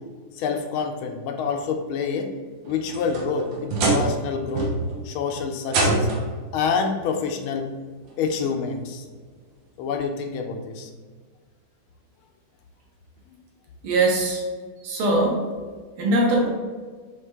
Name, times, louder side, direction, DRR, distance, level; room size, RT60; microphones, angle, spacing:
voice 1, 0.3-2.3 2.7-4.7 5.0-6.1 6.5-7.7 8.2-9.1 9.8-10.9, left 5 dB, 85° left, 4 dB, 1.4 m, -27 dB
sound 1, 2.7-4.2 4.6-5.0 5.7-6.4 7.5-7.6 8.3-8.4 10.0-10.1, right 2 dB, 70° right, 1.5 m, -24 dB
voice 2, 13.8-14.4 14.8-15.5 16.0-16.5, right 2 dB, 85° right, -1 dB, 1.8 m, -21 dB
4.3 x 3.3 x 3.4 m, 1.5 s
omnidirectional pair, 2.3 m